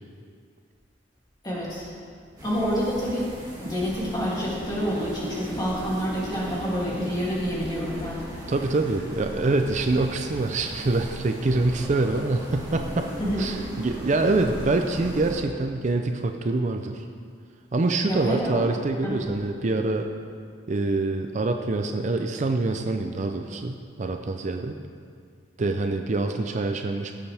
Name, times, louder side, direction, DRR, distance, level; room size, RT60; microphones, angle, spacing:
voice 1, 1.4-1.9 2.4-3.3 3.6-8.2 13.2-13.5 18.0-18.6 19.0-19.3, equal, 25° left, -7 dB, 2.7 m, -28 dB
sound 1, 2.4-15.4, equal, 20° right, 2.2 m, -37 dB
voice 2, 8.5-13.1 13.4-17.0 17.7-20.1 20.7-24.8 25.6-27.1, right 2 dB, 40° right, 5 dB, 0.5 m, -25 dB
16.5 x 7.0 x 3.4 m, 2.2 s
head